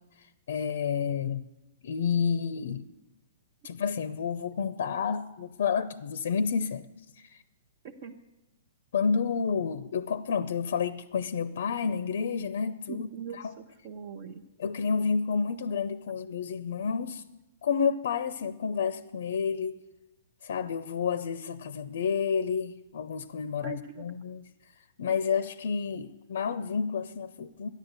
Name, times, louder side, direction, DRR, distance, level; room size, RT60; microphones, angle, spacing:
voice 1, 0.5-1.4 1.8-2.9 3.6-6.9 7.2-7.4 8.9-13.1 14.6-17.2 17.6-19.8 20.4-24.4 25.0-27.7, left 6 dB, 65° left, 15 dB, 0.6 m, -30 dB
voice 2, 7.8-8.2 12.9-14.4 23.6-24.1, right 6 dB, 40° right, 3 dB, 0.8 m, -41 dB
12.5 x 10.5 x 8.1 m, 1.0 s
hypercardioid pair, 165°, 0 cm